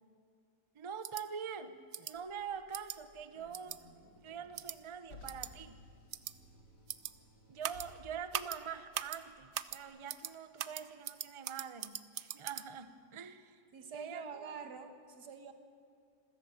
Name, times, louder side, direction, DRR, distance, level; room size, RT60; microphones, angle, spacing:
voice 1, 0.7-3.8 4.2-5.8 7.5-13.6 13.9-14.6, right 7 dB, 30° right, 11 dB, 0.6 m, -45 dB
sound 1, 1.0-1.2 1.9-2.1 2.7-3.0 3.5-3.8 4.6-4.8 5.3-5.5 6.1-6.3 6.9-7.1 7.6-7.9 8.3-8.6 8.9-9.2 9.5-9.8 10.1-10.3 10.6-12.6, right 10 dB, 60° right, 0.8 m, -40 dB
Car, 2.1-9.8, left 2 dB, 85° left, 3.4 m, -59 dB
voice 2, 13.7-15.5, right 6 dB, 85° right, 8 dB, 2.1 m, -46 dB
26.5 x 14.0 x 8.9 m, 2.3 s
omnidirectional pair, 1.7 m